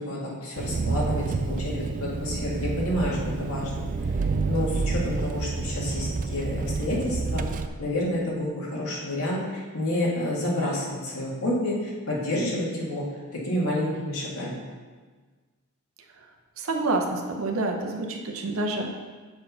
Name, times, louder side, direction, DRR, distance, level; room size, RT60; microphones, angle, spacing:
voice 1, 0.0-3.8 4.5-7.5 7.8-13.1 13.3-14.6, left 1 dB, 75° left, -5 dB, 2.0 m, -29 dB
Engine, 0.6-7.7, right 3 dB, 40° right, 0.3 m, -29 dB
voice 2, 16.6-19.0, right 2 dB, 70° right, 2 dB, 0.8 m, -28 dB
6.9 x 4.5 x 5.6 m, 1.4 s
head